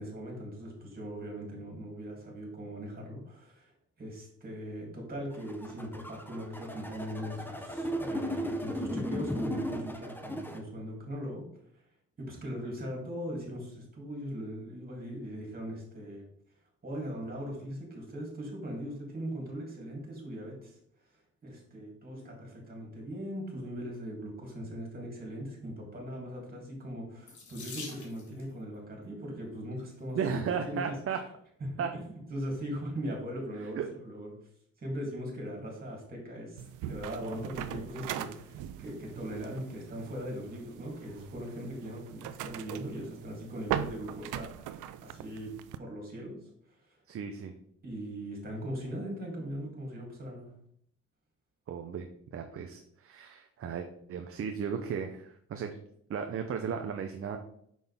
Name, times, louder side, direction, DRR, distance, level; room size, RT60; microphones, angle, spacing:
voice 1, 0.0-3.7 4.0-11.4 12.2-16.2 16.8-20.8 21.4-30.9 31.9-34.3 34.8-46.4 47.8-50.5, equal, 30° right, 0 dB, 3.0 m, -40 dB
sound 1, 5.3-10.6, equal, 5° left, 0.9 m, -36 dB
Water tap faucet / Sink (filling or washing), 27.2-28.5 29.5-29.9 30.6-30.7 31.1-31.2, left 4 dB, 75° left, 2.0 m, -45 dB
voice 2, 30.1-31.2 31.8-31.9 33.6-33.9 47.1-47.5 51.7-52.1 52.3-55.8 56.1-57.4, right 6 dB, 45° right, 5 dB, 0.7 m, -35 dB
sound 2, 36.6-45.8, right 10 dB, 85° right, 0.5 m, -40 dB
6.2 x 5.5 x 3.6 m, 0.69 s
cardioid pair, 90°, 30 cm